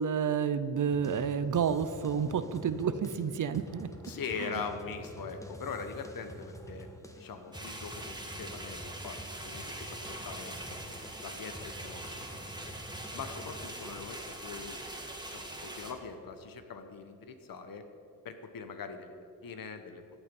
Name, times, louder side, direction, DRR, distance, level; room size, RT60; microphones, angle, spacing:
voice 1, 0.0-3.9, right 7 dB, 55° right, 12 dB, 0.7 m, -30 dB
sound 1, 0.9-16.6, right 1 dB, 10° left, 1.4 m, -49 dB
voice 2, 4.0-6.9 7.1-10.9 11.2-12.7 13.1-14.8 15.2-17.8 18.2-20.0, left 5 dB, 65° left, 8 dB, 1.2 m, -42 dB
sound 2, 7.5-15.9, right 1 dB, 10° right, 1.8 m, -43 dB
15.0 x 8.3 x 5.4 m, 2.6 s
cardioid pair, 70°, 37 cm